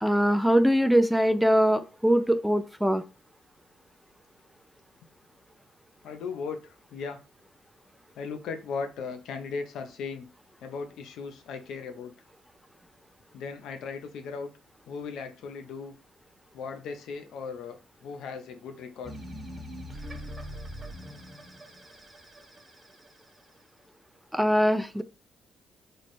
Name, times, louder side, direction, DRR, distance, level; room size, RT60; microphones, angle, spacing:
voice 1, 0.0-3.0 24.3-25.0, equal, ahead, 0.3 m, -22 dB
voice 2, 6.0-7.2 8.2-10.3 10.6-12.1 13.3-14.5 14.9-15.9 16.5-17.8 18.0-19.2, left 5 dB, 80° left, 0.6 m, -37 dB
sound 1, 19.0-23.4, equal, 15° right, 1.0 m, -42 dB
3.2 x 2.1 x 4.2 m
cardioid pair, 90°, 0 cm